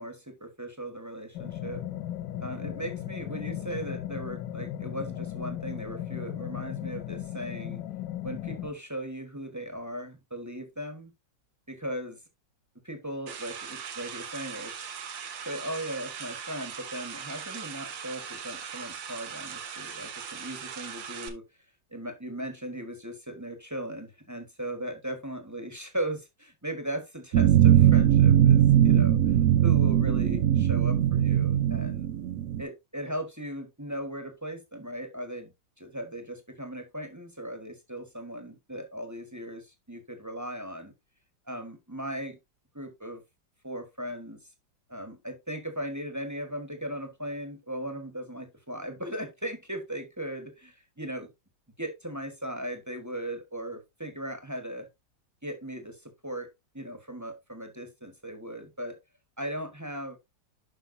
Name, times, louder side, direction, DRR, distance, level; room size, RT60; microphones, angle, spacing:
voice 1, 0.0-1.8 2.4-7.8 8.2-11.1 11.7-12.2 12.8-14.7 15.4-21.4 21.9-29.3 29.6-32.1 32.6-35.5 35.8-40.9 41.5-42.4 42.7-43.2 43.6-44.4 44.9-51.3 51.8-54.9 55.4-56.5 56.7-59.0 59.4-60.2, right 1 dB, 10° right, 1.4 m, -38 dB
sound 1, 1.3-8.7, left 12 dB, 85° left, 1.4 m, -36 dB
sound 2, 13.3-21.3, right 7 dB, 90° right, 1.9 m, -40 dB
sound 3, 27.3-32.6, right 10 dB, 70° right, 0.8 m, -20 dB
10.0 x 5.7 x 2.7 m
omnidirectional pair, 2.0 m